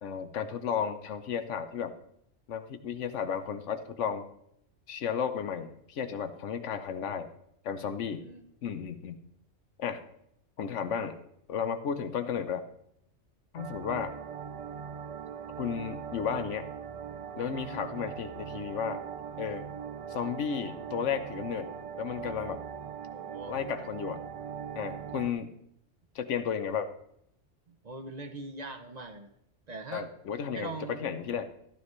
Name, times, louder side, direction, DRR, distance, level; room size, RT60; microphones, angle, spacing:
voice 1, 0.0-1.9 2.5-4.2 4.9-7.3 7.6-8.2 8.6-9.2 9.8-10.0 10.6-11.2 11.5-12.6 13.5-14.1 15.6-16.6 17.4-19.0 19.4-19.6 20.1-21.7 22.0-22.6 23.5-24.2 24.8-25.5 26.1-26.9 29.9-31.5, left 7 dB, 85° left, 10 dB, 1.2 m, -33 dB
voice 2, 7.8-8.4 23.1-23.6 27.7-29.3 29.7-30.1 30.5-31.1, right 3 dB, 40° right, 7 dB, 0.8 m, -42 dB
sound 1, 13.6-25.3, right 7 dB, 65° right, 0.3 m, -40 dB
13.5 x 9.9 x 3.1 m, 0.73 s
omnidirectional pair, 1.2 m